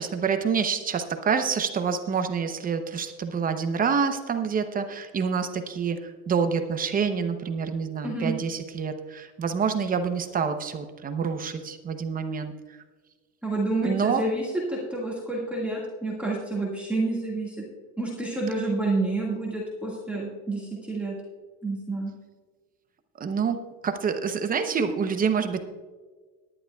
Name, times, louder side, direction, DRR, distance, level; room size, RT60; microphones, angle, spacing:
voice 1, 0.0-12.5 13.8-14.2 23.2-25.6, right 6 dB, 20° right, 8 dB, 0.7 m, -27 dB
voice 2, 13.4-14.4 14.7-17.6 18.0-21.1 21.6-22.1, right 2 dB, 5° right, -5 dB, 1.8 m, -29 dB
18.5 x 11.0 x 2.3 m, 1.4 s
supercardioid pair, 140°, 41 cm